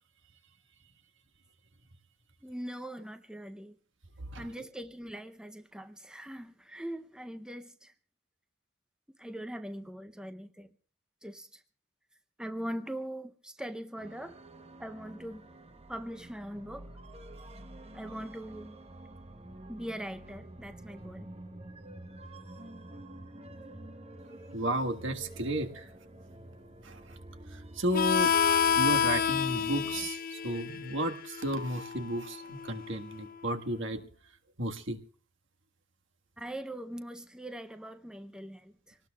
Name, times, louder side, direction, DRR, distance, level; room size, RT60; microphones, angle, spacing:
voice 1, 2.4-3.8 4.4-7.9 9.2-10.7 11.2-11.6 12.4-14.4 14.8-15.5 15.9-17.0 17.9-18.8 19.7-21.3 36.4-39.0, equal, 5° right, 9 dB, 0.7 m, -41 dB
sound 1, 14.0-30.1, right 1 dB, 30° right, 1.1 m, -48 dB
voice 2, 24.5-25.9 26.8-27.0 27.8-28.3 28.8-34.0 34.6-35.0, right 1 dB, 60° right, 5 dB, 1.6 m, -33 dB
Harmonica, 27.9-33.2, left 7 dB, 45° left, 0.6 m, -29 dB
25.5 x 19.0 x 2.3 m, 0.43 s
head